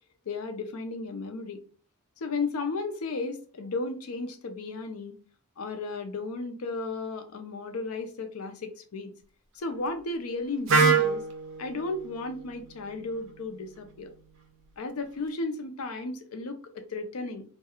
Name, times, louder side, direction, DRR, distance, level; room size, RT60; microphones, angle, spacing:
voice 1, 0.3-1.6 2.2-5.1 5.6-9.1 9.5-11.2 11.6-14.1 14.8-17.4, left 3 dB, 85° left, 0.5 m, -34 dB
Wind instrument woodwind instrument, 10.7-14.6, right 4 dB, 60° right, 0.5 m, -28 dB
2.3 x 2.2 x 2.9 m
head